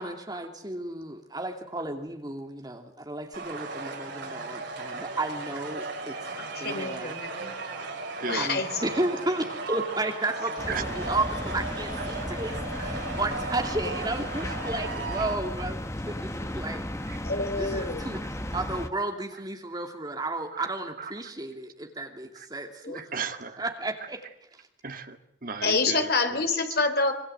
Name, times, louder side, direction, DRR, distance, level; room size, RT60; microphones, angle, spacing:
voice 1, 0.0-6.2 6.6-7.2 8.4-16.9 17.6-18.2 18.5-23.1 23.6-24.2 24.5-24.7, right 2 dB, 20° right, 4 dB, 2.7 m, -33 dB
sound 1, 3.3-15.3, right 3 dB, 70° right, 7.0 m, -36 dB
voice 2, 6.3-7.5 8.3-8.9 17.2-18.0 22.8-23.0 25.6-27.1, left 3 dB, 55° left, 7 dB, 3.3 m, -27 dB
sound 2, 10.6-18.9, left 1 dB, 15° left, 1.3 m, -35 dB
voice 3, 22.9-23.6 24.8-26.4, right 5 dB, 50° right, 7 dB, 1.9 m, -35 dB
26.0 x 23.5 x 8.0 m, 0.71 s
head